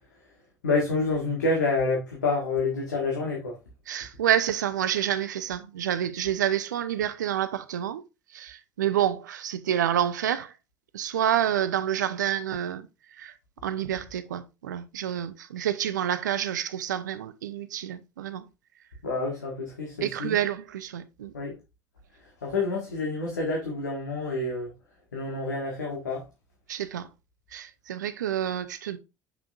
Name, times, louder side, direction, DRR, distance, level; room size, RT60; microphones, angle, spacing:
voice 1, 0.6-3.6 19.0-20.3 21.3-21.5 22.4-24.7 25.1-26.2, left 3 dB, 80° left, 1.6 m, -28 dB
voice 2, 3.9-8.0 8.3-10.5 10.9-12.9 13.1-13.3 13.6-18.5 20.0-21.3 26.7-27.1 27.5-29.0, right 10 dB, 75° right, 0.6 m, -28 dB
6.7 x 5.9 x 2.5 m
figure-of-eight pair, 60°, 10 cm